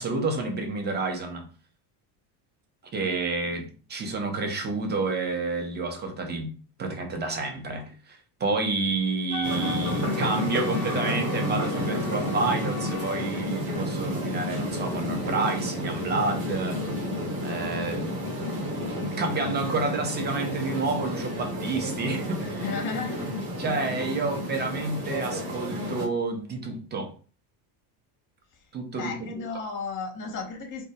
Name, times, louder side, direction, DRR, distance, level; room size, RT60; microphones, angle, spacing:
voice 1, 0.0-1.5 2.9-6.5 6.8-16.8 17.4-18.1 19.1-22.6 23.6-27.1 28.7-29.4, right 3 dB, 20° right, 0.5 m, -29 dB
Wind instrument woodwind instrument, 9.3-13.2, left 8 dB, 75° left, 0.6 m, -38 dB
sound 1, 9.4-26.1, equal, 85° right, 1.2 m, -31 dB
voice 2, 22.5-23.3 28.5-28.7 28.9-30.8, left 4 dB, 25° left, 0.7 m, -34 dB
2.2 x 2.0 x 2.7 m
supercardioid pair, 100°, 48 cm